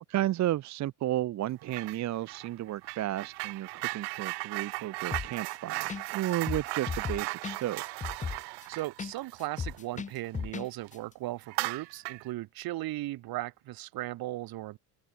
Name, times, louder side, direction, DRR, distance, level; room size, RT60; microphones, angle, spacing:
voice 1, 0.1-7.8, right 14 dB, 45° right, 0.7 m, -33 dB
sound 1, 1.7-2.0 2.3-10.5 10.8-10.9 11.5-12.3, right 28 dB, 75° right, 0.8 m, -37 dB
sound 2, 5.1-5.5 5.9-6.0 6.3-9.1 9.4-10.7 10.9-11.0, left 6 dB, 20° left, 0.8 m, -35 dB
voice 2, 8.7-14.8, right 17 dB, 60° right, 1.6 m, -37 dB
open air
cardioid pair, 115°, 41 cm